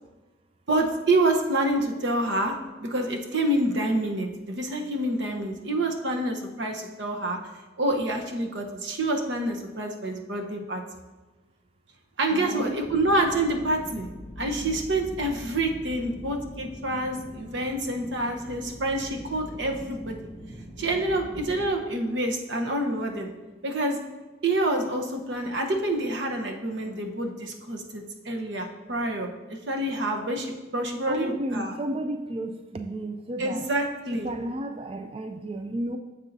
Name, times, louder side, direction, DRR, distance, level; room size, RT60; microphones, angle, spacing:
voice 1, 0.7-7.4 7.8-10.8 12.2-14.1 14.4-20.2 20.8-23.3 23.6-24.0 24.4-31.7 33.4-34.3, right 1 dB, 85° right, 3 dB, 1.0 m, -27 dB
voice 2, 12.3-12.8 31.1-33.6 34.1-36.0, right 1 dB, 30° right, 6 dB, 0.3 m, -32 dB
sound 1, 12.8-21.7, equal, 20° left, 1.7 m, -42 dB
9.9 x 7.2 x 2.7 m, 1.2 s
head